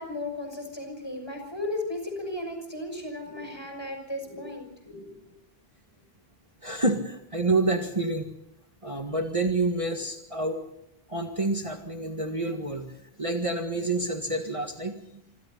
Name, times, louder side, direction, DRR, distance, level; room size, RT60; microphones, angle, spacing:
voice 1, 0.0-5.4, left 1 dB, 25° left, 4 dB, 6.5 m, -35 dB
voice 2, 6.6-8.3 8.8-10.6 11.1-12.9 13.2-14.9, right 2 dB, 30° right, 3 dB, 1.9 m, -28 dB
27.0 x 26.0 x 4.1 m, 0.80 s
omnidirectional pair, 1.0 m